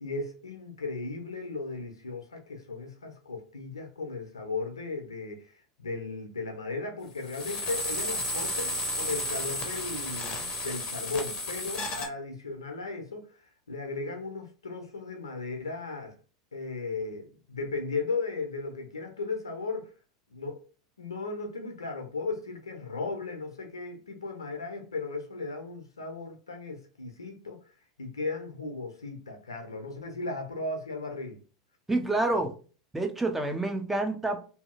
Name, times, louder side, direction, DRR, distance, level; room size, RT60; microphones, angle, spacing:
voice 1, 0.0-5.5 5.8-13.3 13.7-16.2 16.5-19.9 20.3-20.6 21.0-27.6 28.0-31.4, left 3 dB, 85° left, 0.7 m, -36 dB
sound 1, 7.3-12.1, left 1 dB, 40° left, 0.7 m, -33 dB
voice 2, 31.9-32.6 32.9-34.5, right 2 dB, 10° right, 0.6 m, -28 dB
2.7 x 2.7 x 2.4 m
figure-of-eight pair, 85°, 2 cm